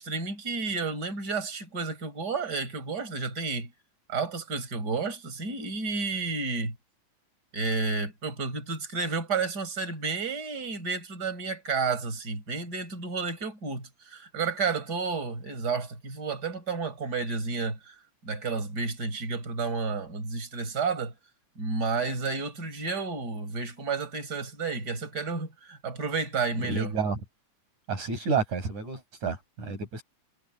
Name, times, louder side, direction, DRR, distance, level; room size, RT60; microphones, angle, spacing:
voice 1, 0.0-3.7 4.1-6.7 7.5-18.0 18.2-21.1 21.6-26.9, right 4 dB, 30° right, 6.0 m, -31 dB
voice 2, 26.6-27.2 27.9-30.0, right 5 dB, 70° right, 7.4 m, -30 dB
omnidirectional pair, 3.5 m